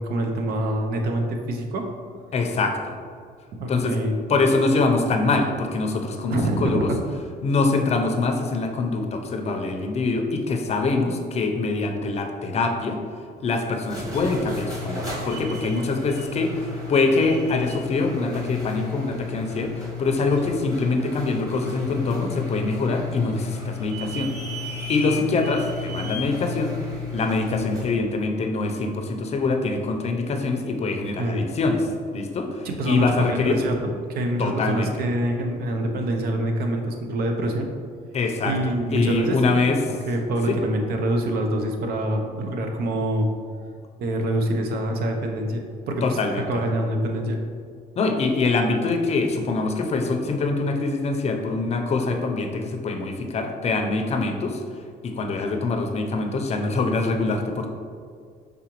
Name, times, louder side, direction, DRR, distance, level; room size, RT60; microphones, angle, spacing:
voice 1, 0.0-1.9 3.6-4.2 6.3-7.0 31.2-31.5 32.6-37.7 38.5-39.6 40.1-43.3 44.0-46.2 46.5-47.4, right 1 dB, 65° right, 3 dB, 0.7 m, -25 dB
voice 2, 2.3-3.0 3.7-4.0 4.3-6.9 7.4-13.0 13.4-24.6 24.9-26.8 27.1-33.6 34.4-34.9 38.1-38.6 38.9-39.8 40.5-40.6 46.0-46.6 48.0-54.6 55.0-57.7, left 3 dB, 40° left, 4 dB, 0.5 m, -24 dB
sound 1, 13.7-28.0, left 4 dB, 20° right, 1.4 m, -33 dB
4.9 x 3.5 x 3.0 m, 2.1 s
cardioid pair, 110°, 17 cm